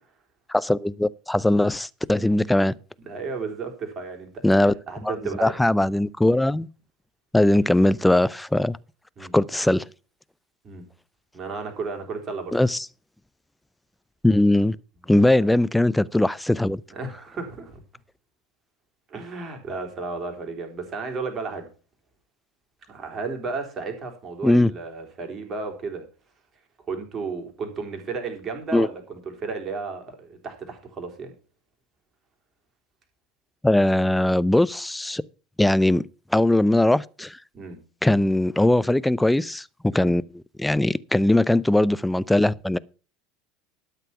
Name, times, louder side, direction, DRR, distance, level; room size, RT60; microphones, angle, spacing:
voice 1, 0.5-2.7 4.4-4.7 5.0-5.1 5.4-6.7 7.3-8.8 9.3-9.9 12.5-12.9 14.2-14.8 15.1-16.8 24.4-24.7 28.7-28.9 33.6-35.2 35.6-36.0 36.3-37.4 38.0-40.2 40.6-42.8, left 1 dB, 5° left, 0.5 m, -20 dB
voice 2, 3.0-5.5 9.2-9.3 10.6-10.8 11.3-12.6 15.2-15.5 16.9-17.8 19.1-21.7 22.9-26.0 26.9-31.3 37.5-37.8 39.9-40.1, right 4 dB, 30° right, 3.6 m, -33 dB
12.5 x 6.8 x 5.8 m
figure-of-eight pair, 75°, 0 cm